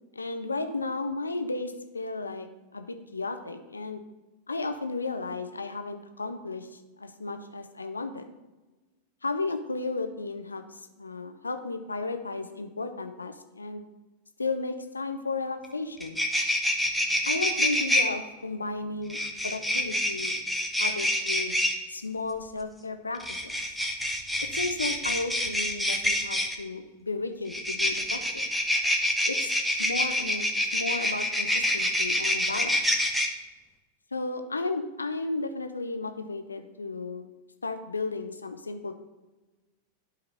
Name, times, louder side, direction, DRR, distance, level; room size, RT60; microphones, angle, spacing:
voice 1, 0.1-2.5 2.7-4.0 4.5-8.3 9.2-13.8 14.4-16.2 17.3-19.2 19.4-20.3 20.8-21.6 21.9-23.5 24.5-28.5 29.2-32.9 34.1-37.3 37.6-38.9, left 3 dB, 80° left, 8 dB, 0.7 m, -34 dB
sound 1, 15.6-15.7 16.0-18.0 19.1-21.7 23.1-26.5 27.5-33.3, left 1 dB, ahead, 0.8 m, -26 dB
11.5 x 4.0 x 4.2 m, 1.1 s
figure-of-eight pair, 90°, 0 cm